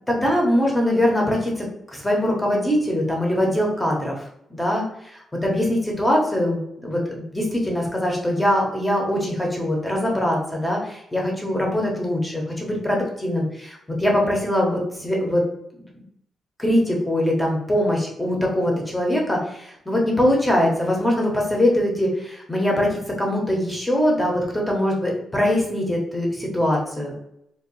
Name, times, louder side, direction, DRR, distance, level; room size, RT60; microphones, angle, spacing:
voice 1, 0.1-4.9 5.1-15.4 16.6-27.1, left 1 dB, 10° left, -1 dB, 0.8 m, -22 dB
2.6 x 2.2 x 4.0 m, 0.77 s
wide cardioid pair, 140°, 0 cm